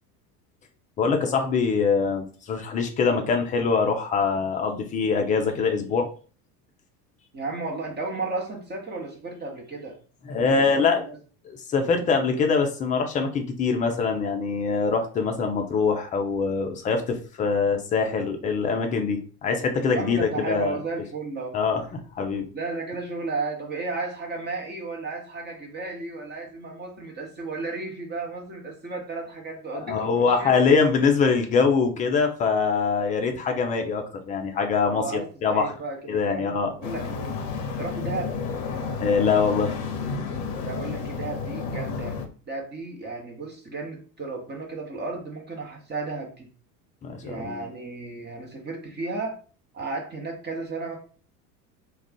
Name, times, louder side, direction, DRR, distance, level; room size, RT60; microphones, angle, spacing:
voice 1, 1.0-6.1 10.3-11.0 11.5-20.8 21.5-22.5 29.7-35.7 36.1-36.7 39.0-39.8 47.0-47.6, left 5 dB, 20° left, 4 dB, 0.3 m, -23 dB
voice 2, 7.3-10.0 10.6-11.2 19.9-21.5 22.5-30.6 34.8-37.4 37.8-38.3 40.6-42.2 42.5-46.5 47.2-49.4 49.7-51.0, right 3 dB, 20° right, 1 dB, 1.0 m, -34 dB
sound 1, 36.8-42.3, left 5 dB, 50° left, 0.7 m, -31 dB
2.4 x 2.3 x 3.6 m, 0.39 s
hypercardioid pair, 75°, 49 cm